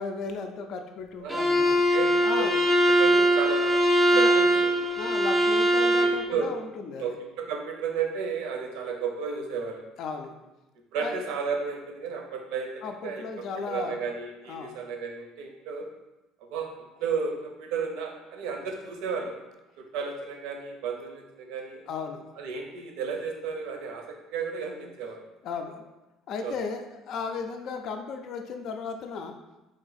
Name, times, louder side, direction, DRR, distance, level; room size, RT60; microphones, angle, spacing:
voice 1, 0.0-1.8 2.2-2.5 4.0-4.4 5.0-7.0 10.0-10.3 11.0-11.2 12.8-14.0 14.5-14.8 21.9-22.2 25.4-25.9 26.3-29.4, left 4 dB, 60° left, 5 dB, 0.4 m, -35 dB
voice 2, 1.2-2.6 2.9-3.8 4.1-4.7 5.8-6.5 6.8-9.8 10.9-15.9 16.5-16.7 17.0-19.3 19.8-21.8 22.4-25.2 26.4-26.5, right 5 dB, 80° right, 3 dB, 0.6 m, -33 dB
Bowed string instrument, 1.3-6.2, equal, 10° right, 0.5 m, -21 dB
3.3 x 2.7 x 4.0 m, 1.0 s
cardioid pair, 105°, 0 cm